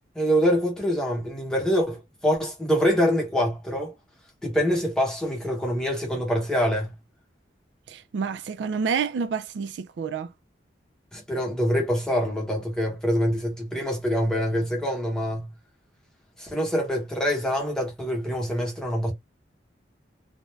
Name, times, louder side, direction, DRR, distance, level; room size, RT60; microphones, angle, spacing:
voice 1, 0.1-3.9 4.4-6.9 11.1-15.5 16.4-19.1, equal, 5° left, 0.9 m, -25 dB
voice 2, 7.9-10.3, right 6 dB, 75° right, 0.3 m, -29 dB
2.4 x 2.1 x 3.2 m
head